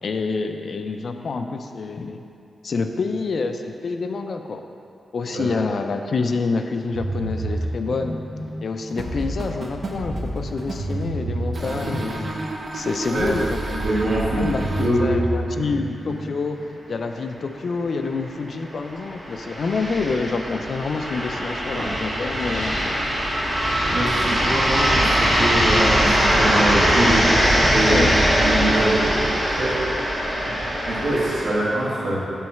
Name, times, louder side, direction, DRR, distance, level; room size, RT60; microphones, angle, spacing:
voice 1, 0.0-2.2 2.6-4.6 5.1-8.2 8.6-12.3 12.7-13.9 14.3-22.9 27.9-28.3, left 4 dB, 50° left, 6 dB, 0.4 m, -27 dB
sound 1, 6.9-16.7, right 1 dB, 90° right, 1.2 m, -30 dB
sound 2, 8.9-11.0 11.5-14.9, right 2 dB, 40° right, 0.6 m, -33 dB
voice 2, 13.8-14.5 14.8-15.1 21.7-22.0 23.9-28.1 28.3-29.0 29.2-29.9 30.4-30.5 30.9-32.2, right 1 dB, 65° right, -7 dB, 1.6 m, -24 dB
sound 3, 17.5-17.6 17.8-17.9 18.7-31.5, equal, 15° right, 1.5 m, -21 dB
7.7 x 3.1 x 5.8 m, 2.6 s
wide cardioid pair, 175°, 0 cm